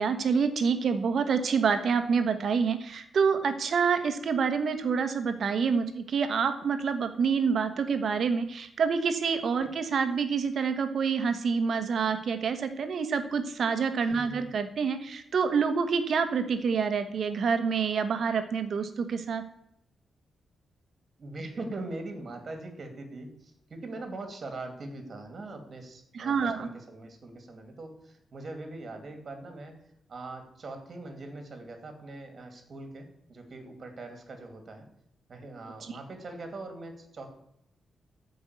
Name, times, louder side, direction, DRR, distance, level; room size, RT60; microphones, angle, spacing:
voice 1, 0.0-19.4 26.1-26.7 35.8-35.9, right 6 dB, 55° right, 9 dB, 1.2 m, -27 dB
voice 2, 14.1-14.5 21.2-29.8 30.1-34.9 35.3-37.3, right 2 dB, 35° right, 5 dB, 2.4 m, -41 dB
13.5 x 5.4 x 8.2 m, 0.74 s
wide cardioid pair, 165°, 0 cm